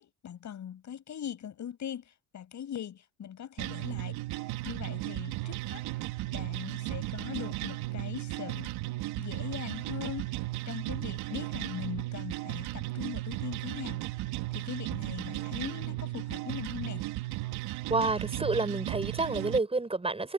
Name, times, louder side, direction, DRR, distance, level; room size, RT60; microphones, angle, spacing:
voice 1, 0.0-4.2 4.6-5.8 6.3-8.7 9.2-10.3 10.7-14.0 14.5-17.1, left 9 dB, 45° left, 7.9 m, -41 dB
sound 1, 3.6-19.6, right 18 dB, 75° right, 4.2 m, -35 dB
voice 2, 17.9-20.3, right 3 dB, 15° right, 6.1 m, -29 dB
supercardioid pair, 95°, 38 cm